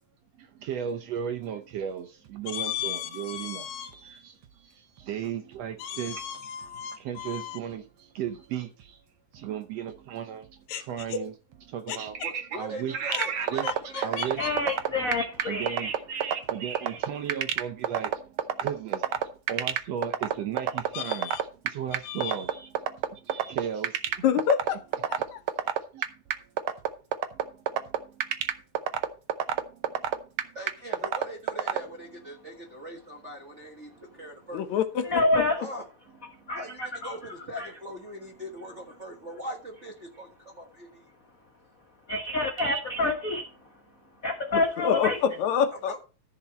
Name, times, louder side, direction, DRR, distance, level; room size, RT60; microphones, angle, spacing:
voice 1, 0.4-9.0 9.3-11.3 11.7-21.4 21.6-24.2 25.2-25.3 25.9-26.0 27.3-28.6 29.6-30.1 30.5-30.6 33.9-34.2 42.6-42.8, right 8 dB, 70° right, 1.7 m, -36 dB
voice 2, 2.5-3.9 5.8-7.6 10.7-10.8 11.1-11.2 11.9-12.0 13.1-13.3 13.6-14.8 20.9-21.4 22.0-22.3 24.2-24.8 25.1-25.4 34.5-35.4 44.5-46.0, left 8 dB, 70° left, 2.2 m, -30 dB
voice 3, 12.2-14.3 30.5-34.8 35.6-35.8 36.5-41.1 45.7-46.0, equal, 35° right, 1.2 m, -41 dB
sound 1, 13.1-31.8, right 10 dB, 90° right, 1.1 m, -26 dB
voice 4, 14.4-15.9 35.0-35.6 36.5-37.2 37.6-37.7 42.1-43.4 44.2-45.2, left 2 dB, 50° left, 0.9 m, -27 dB
14.0 x 6.0 x 4.2 m
omnidirectional pair, 3.5 m